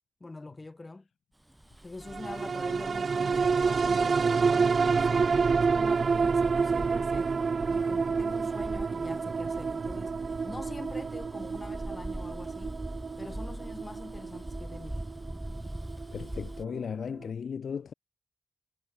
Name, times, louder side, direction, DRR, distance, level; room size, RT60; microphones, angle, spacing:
voice 1, 0.2-1.1 1.8-5.3 5.7-7.3 7.7-12.8 13.2-15.0, left 2 dB, 30° left, 4.4 m, -44 dB
Bus, 1.5-16.7, right 1 dB, 10° right, 2.4 m, -43 dB
sound 1, 2.1-16.8 17.2-17.3, right 5 dB, 60° right, 0.8 m, -28 dB
voice 2, 16.1-17.9, left 6 dB, 70° left, 0.6 m, -36 dB
supercardioid pair, 45°, 0 cm